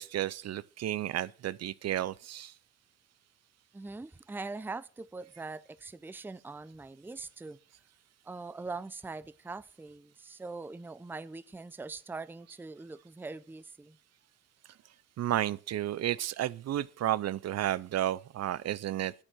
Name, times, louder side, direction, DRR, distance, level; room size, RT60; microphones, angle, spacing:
voice 1, 0.0-2.5 15.2-19.1, right 12 dB, 60° right, 0.6 m, -32 dB
voice 2, 3.7-7.6 8.2-14.0, right 3 dB, 5° right, 0.5 m, -42 dB
9.0 x 8.6 x 6.3 m
cardioid pair, 90°, 30 cm